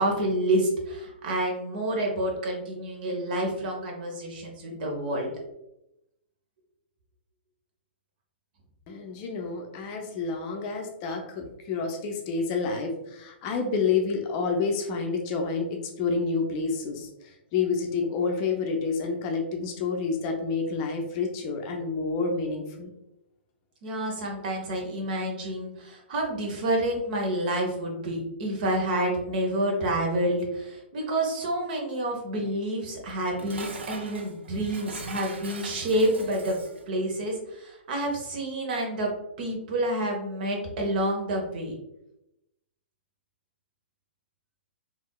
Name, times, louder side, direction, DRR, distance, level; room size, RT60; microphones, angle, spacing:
voice 1, 0.0-5.3 23.8-36.6 36.9-39.1 39.4-41.7, right 1 dB, 50° right, 1 dB, 0.9 m, -28 dB
voice 2, 8.9-22.9, left 4 dB, 35° left, 3 dB, 0.5 m, -29 dB
Dishes pots and pans, 33.1-36.9, right 4 dB, 75° right, 0.4 m, -41 dB
3.4 x 2.5 x 2.2 m, 0.86 s
figure-of-eight pair, 120°, 6 cm